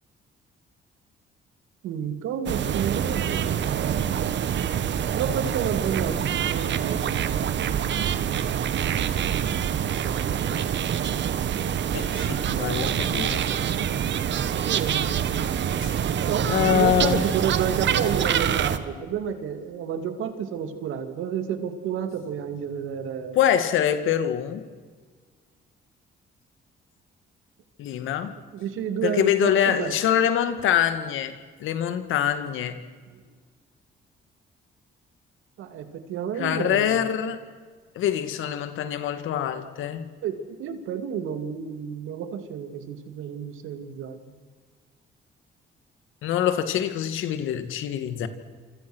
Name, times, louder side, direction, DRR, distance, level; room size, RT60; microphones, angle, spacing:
voice 1, 1.8-4.0 5.1-6.2 6.4-7.4 14.5-15.2 16.2-23.4 28.5-30.0 33.1-33.2 35.6-37.1 40.2-44.4, right 8 dB, 85° right, 2.7 m, -30 dB
sound 1, 2.5-18.8, right 9 dB, 65° right, 1.6 m, -26 dB
voice 2, 11.9-13.4 15.8-15.9 16.5-17.3 23.4-24.6 27.8-28.3 29.0-31.3 31.6-32.8 36.4-37.4 38.0-40.0 46.2-48.3, left 10 dB, 85° left, 2.2 m, -24 dB
27.0 x 26.0 x 6.4 m
cardioid pair, 90°, 20 cm